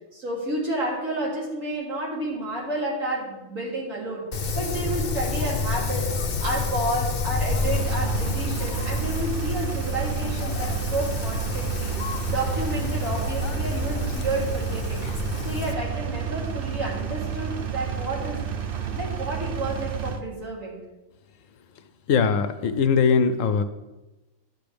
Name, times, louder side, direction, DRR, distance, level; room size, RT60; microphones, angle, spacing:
voice 1, 0.1-4.2 4.5-11.9 12.3-15.0 15.4-18.4 18.9-20.8, right 1 dB, 70° right, -5 dB, 3.4 m, -30 dB
Wind, 4.3-15.7, left 4 dB, 45° left, 0.7 m, -29 dB
Engine, 7.5-20.2, right 8 dB, 50° right, 0.8 m, -30 dB
sound 1, 11.7-15.8, left 1 dB, 10° left, 0.7 m, -38 dB
voice 2, 22.1-23.6, left 6 dB, 70° left, 11 dB, 1.0 m, -21 dB
12.0 x 8.3 x 3.4 m, 1.1 s
omnidirectional pair, 1.4 m